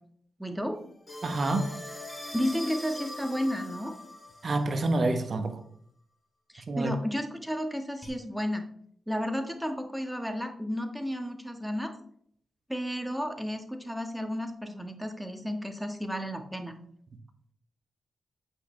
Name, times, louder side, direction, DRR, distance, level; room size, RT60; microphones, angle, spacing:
voice 1, 0.4-0.8 2.3-3.9 6.5-8.6 9.1-11.9 12.7-16.8, equal, 5° right, 1.5 m, -32 dB
sound 1, 1.1-4.7 8.0-8.1, left 1 dB, 20° left, 3.4 m, -41 dB
voice 2, 1.2-1.7 4.4-5.6 6.7-6.9, right 2 dB, 55° right, 1.1 m, -27 dB
8.2 x 6.0 x 3.3 m
supercardioid pair, 40°, 0 cm